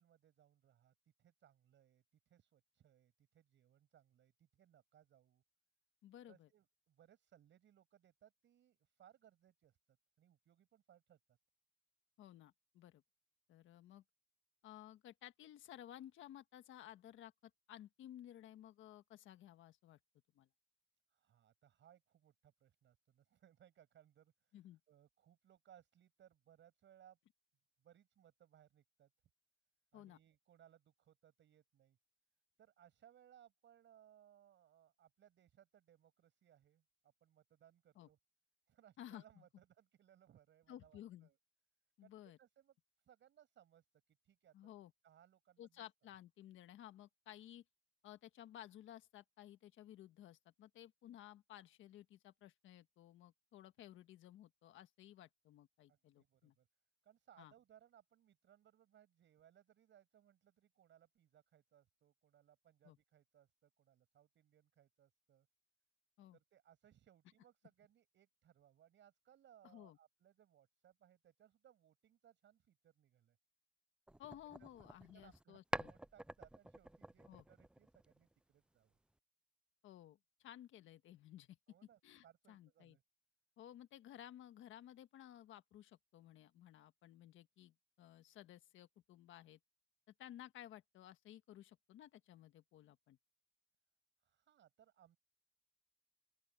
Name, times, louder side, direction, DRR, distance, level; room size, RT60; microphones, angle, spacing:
voice 1, 0.0-5.4 6.2-11.4 21.1-24.6 24.9-27.2 27.8-29.1 29.9-32.0 32.6-38.2 38.7-41.4 42.0-44.5 45.0-45.8 55.9-56.7 57.0-65.5 66.3-73.4 74.6-74.7 75.1-79.0 81.7-83.0 94.2-95.2, right 10 dB, 70° right, 7.2 m, -68 dB
voice 2, 6.0-6.5 12.2-13.0 13.5-14.0 14.6-17.3 17.7-20.0 20.3-20.5 24.5-24.8 29.9-30.2 37.9-38.1 39.0-39.4 40.7-41.3 42.0-42.4 44.5-44.9 45.6-47.6 48.0-56.5 57.4-57.5 62.8-63.0 66.2-66.4 69.6-70.0 74.2-75.9 77.3-77.4 79.8-81.6 82.0-83.0 83.6-89.6 90.2-93.2, left 12 dB, 80° left, 1.5 m, -56 dB
sound 1, 74.1-75.4 75.7-78.3, right 1 dB, 5° right, 0.4 m, -48 dB
open air
cardioid pair, 90°, 20 cm